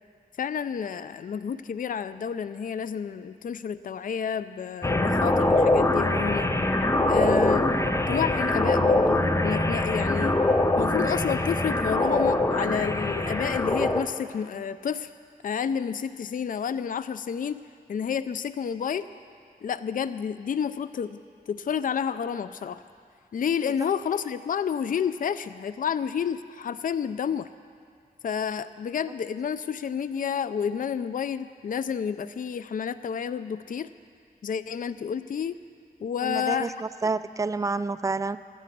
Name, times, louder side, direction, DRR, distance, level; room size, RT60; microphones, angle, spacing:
voice 1, 0.4-6.5 7.1-7.8 8.1-10.4 10.8-15.1 15.4-17.6 17.9-19.1 19.6-21.2 21.5-22.8 23.3-27.5 28.2-33.9 34.4-35.6 36.0-36.7, left 7 dB, 60° left, 13 dB, 0.4 m, -30 dB
sound 1, 4.8-14.0, left 2 dB, 20° left, 0.8 m, -23 dB
voice 2, 36.2-38.4, right 3 dB, 20° right, 13 dB, 0.4 m, -29 dB
13.5 x 9.9 x 8.5 m, 2.3 s
wide cardioid pair, 80°, 16 cm